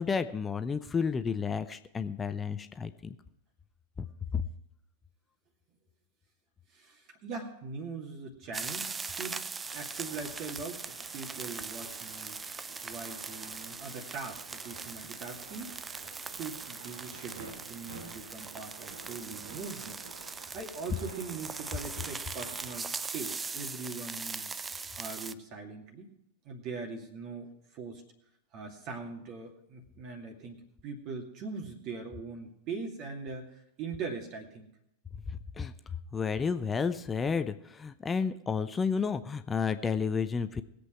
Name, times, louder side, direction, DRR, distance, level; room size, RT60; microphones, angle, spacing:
voice 1, 0.0-3.2 4.3-4.4 35.6-35.7 36.1-40.6, left 5 dB, 15° left, 11 dB, 0.8 m, -31 dB
voice 2, 6.7-12.4 12.8-15.7 16.2-20.0 20.5-24.6 25.0-26.1 26.4-28.0 28.5-34.7, right 4 dB, 40° right, 2 dB, 2.4 m, -41 dB
sound 1, 8.5-25.3, right 4 dB, 15° right, 0.5 m, -41 dB
sound 2, 9.7-22.8, right 4 dB, 60° right, 1.7 m, -51 dB
20.5 x 8.2 x 4.6 m, 0.79 s
figure-of-eight pair, 90°, 0 cm